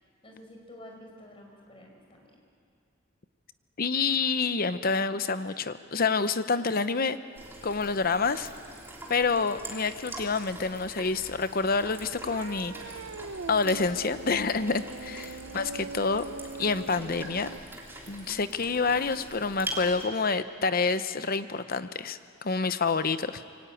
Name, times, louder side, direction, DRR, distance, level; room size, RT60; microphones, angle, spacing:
voice 1, 0.2-2.2 9.0-9.2 15.1-15.6 18.2-18.4, left 1 dB, 25° left, 0 dB, 5.3 m, -50 dB
voice 2, 3.8-7.2 7.6-8.5 9.1-12.7 13.5-16.2 16.6-17.5 18.1-23.4, left 4 dB, 45° left, 12 dB, 0.8 m, -28 dB
sound 1, 7.3-20.1, right 1 dB, 10° right, 3.2 m, -44 dB
sound 2, 11.1-17.6, right 4 dB, 85° right, 0.7 m, -42 dB
25.5 x 23.5 x 9.1 m, 2.3 s
head